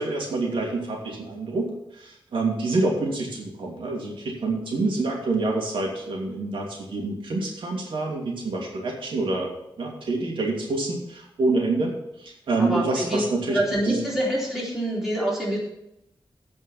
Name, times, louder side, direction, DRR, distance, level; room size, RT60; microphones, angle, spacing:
voice 1, 0.0-9.5 9.8-13.6 13.8-14.0, right 3 dB, 80° right, -1 dB, 2.8 m, -27 dB
voice 2, 12.6-13.2 13.5-15.6, right 1 dB, ahead, -5 dB, 3.7 m, -26 dB
16.0 x 5.4 x 5.8 m, 0.80 s
wide cardioid pair, 175°, 9 cm